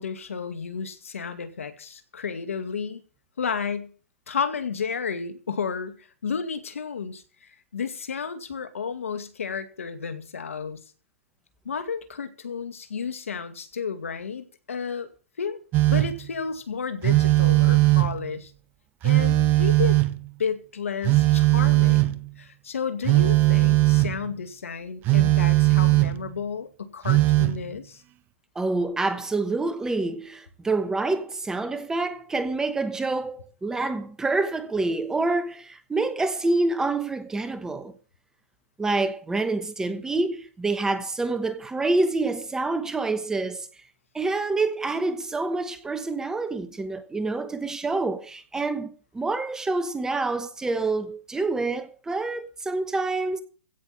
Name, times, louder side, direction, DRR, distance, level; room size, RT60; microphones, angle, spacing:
voice 1, 0.0-3.0 3.4-3.9 4.3-10.8 11.6-15.1 15.4-15.6 15.9-18.5 19.0-20.0 20.4-28.0, left 6 dB, 80° left, 2.2 m, -32 dB
Telephone, 15.7-16.3 17.0-18.3 19.0-20.3 21.0-22.3 23.0-24.2 25.0-26.3 27.0-27.6, right 18 dB, 25° right, 0.9 m, -19 dB
voice 2, 28.5-37.9 38.8-43.7 44.1-53.4, right 3 dB, 10° right, 1.1 m, -27 dB
16.0 x 6.3 x 7.7 m
hypercardioid pair, 130°, 7 cm